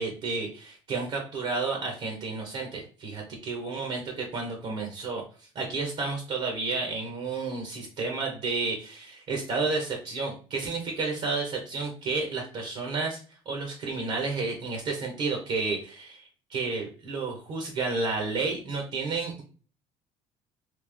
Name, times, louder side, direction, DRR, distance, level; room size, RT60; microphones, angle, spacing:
voice 1, 0.0-5.2 5.5-13.2 13.4-19.4, right 4 dB, 55° right, 1 dB, 1.1 m, -31 dB
3.4 x 3.2 x 3.5 m, 0.39 s
cardioid pair, 115°, 12 cm